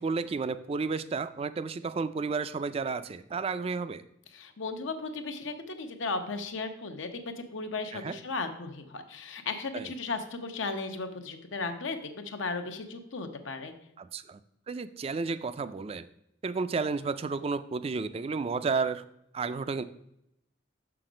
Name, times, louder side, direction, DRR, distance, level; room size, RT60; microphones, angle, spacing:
voice 1, 0.0-4.0 7.9-8.1 9.7-9.9 14.0-14.4 14.7-16.1 16.4-19.0 19.3-19.8, right 4 dB, 30° right, 13 dB, 0.3 m, -32 dB
voice 2, 4.3-13.7, left 3 dB, 85° left, 6 dB, 0.8 m, -36 dB
6.0 x 5.9 x 5.0 m, 0.80 s
head